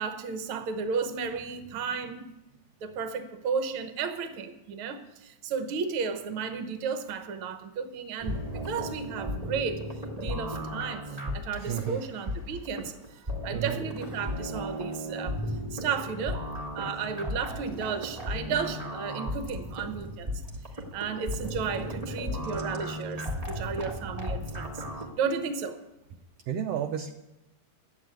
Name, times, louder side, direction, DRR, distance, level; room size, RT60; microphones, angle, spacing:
voice 1, 0.0-2.3 2.8-9.8 10.2-15.4 15.7-16.4 16.7-20.4 20.7-24.8 25.2-25.8, right 6 dB, 60° right, 8 dB, 1.5 m, -33 dB
sound 1, 8.2-25.1, equal, 35° right, 0.5 m, -35 dB
voice 2, 11.7-12.0 13.5-13.8 23.4-23.5 26.5-27.1, right 9 dB, 75° right, 5 dB, 1.5 m, -32 dB
11.5 x 8.1 x 9.0 m, 0.97 s
omnidirectional pair, 3.5 m